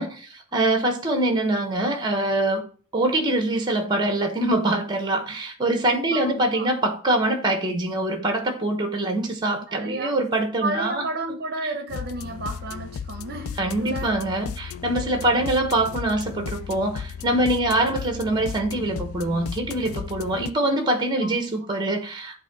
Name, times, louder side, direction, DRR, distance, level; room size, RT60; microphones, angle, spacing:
voice 1, 0.0-2.6 2.9-11.0 11.6-11.7 13.6-22.4, right 1 dB, 20° right, 1.0 m, -24 dB
voice 2, 6.1-6.7 9.7-10.2 10.6-14.2 21.2-21.7, right 2 dB, 50° right, 0.8 m, -32 dB
sound 1, 11.9-20.5, left 7 dB, 75° left, 0.4 m, -35 dB
8.1 x 2.7 x 5.1 m
head